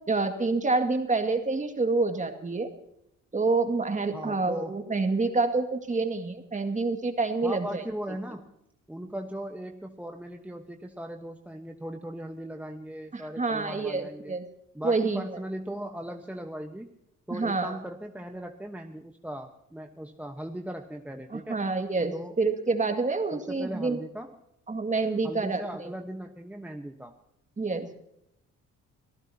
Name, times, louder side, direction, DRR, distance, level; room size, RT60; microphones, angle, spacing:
voice 1, 0.1-2.7 3.3-7.8 13.1-14.5 14.8-15.2 17.3-17.8 21.3-24.0 24.7-25.6 27.6-27.9, right 3 dB, 25° right, 6 dB, 2.0 m, -27 dB
voice 2, 4.1-4.8 7.4-8.5 8.9-14.4 14.7-16.9 17.3-21.6 22.1-22.4 23.3-24.3 25.2-27.1, right 1 dB, 5° right, 4 dB, 1.1 m, -38 dB
25.0 x 14.5 x 2.8 m, 0.79 s
cardioid pair, 90°, 30 cm